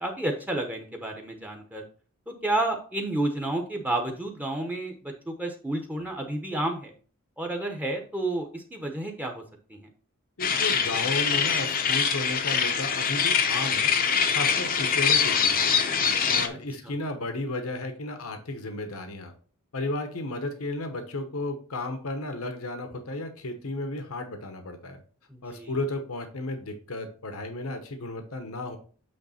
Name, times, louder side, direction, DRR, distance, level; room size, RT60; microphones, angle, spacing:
voice 1, 0.0-1.8 2.3-4.9 5.3-6.9 7.4-9.4 9.7-9.8 16.8-16.9 25.3-25.7, right 2 dB, 10° right, 2 dB, 0.9 m, -30 dB
voice 2, 10.4-13.9 14.3-15.8 16.3-19.3 19.7-25.0 25.4-28.8, left 2 dB, 75° left, 6 dB, 1.0 m, -33 dB
sound 1, 10.4-16.5, left 6 dB, 40° left, 0.7 m, -24 dB
8.6 x 3.3 x 4.2 m, 0.41 s
head